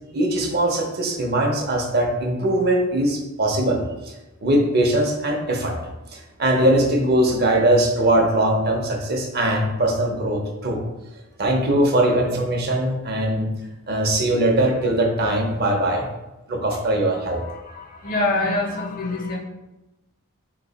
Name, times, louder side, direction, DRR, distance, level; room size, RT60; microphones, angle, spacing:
voice 1, 0.1-3.8 4.4-5.8 6.1-10.8 11.4-13.5 13.9-16.0 16.5-17.4, right 1 dB, 45° right, 2 dB, 0.7 m, -21 dB
voice 2, 17.3-19.4, left 2 dB, 40° left, 0 dB, 0.7 m, -26 dB
4.1 x 3.0 x 4.0 m, 1.0 s
head